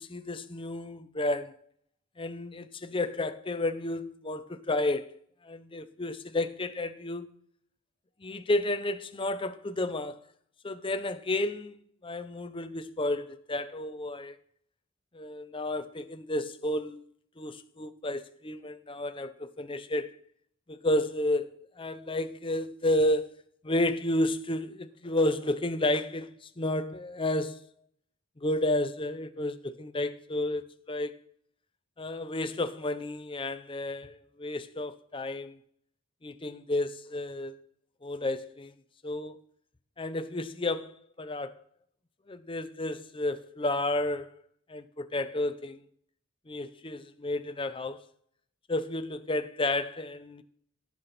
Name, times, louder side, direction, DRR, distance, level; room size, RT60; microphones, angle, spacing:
voice 1, 0.0-1.6 2.2-5.1 5.4-7.3 8.2-10.2 10.6-11.8 12.0-14.4 15.1-17.0 17.4-20.1 20.7-27.7 28.4-31.1 32.0-35.6 36.2-37.6 38.0-38.7 39.0-39.4 40.0-41.5 42.3-44.3 44.7-45.8 46.5-48.1 48.7-50.4, left 1 dB, 25° left, 0.7 m, -31 dB
17.5 x 6.0 x 4.2 m
head